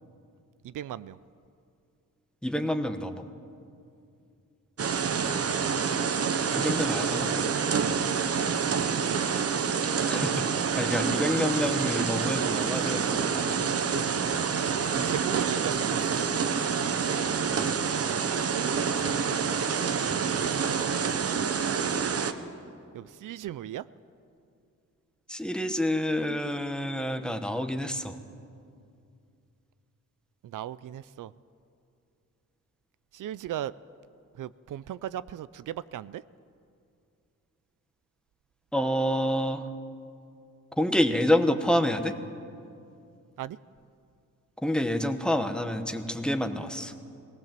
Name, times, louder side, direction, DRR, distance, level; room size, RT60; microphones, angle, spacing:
voice 1, 0.6-1.2 5.1-5.7 8.7-9.4 15.1-16.5 19.9-21.8 22.9-23.8 30.4-31.3 33.1-33.7 34.4-36.2 43.4-43.6, right 12 dB, 85° right, 17 dB, 0.5 m, -38 dB
voice 2, 2.4-3.2 6.5-7.5 10.1-10.4 10.7-13.7 17.5-17.8 25.3-28.1 38.7-39.7 40.8-42.1 44.6-46.9, left 1 dB, 5° left, 7 dB, 1.0 m, -28 dB
sound 1, 4.8-22.3, right 6 dB, 50° right, 0.9 m, -27 dB
20.0 x 18.5 x 7.5 m, 2.5 s
wide cardioid pair, 155°, 31 cm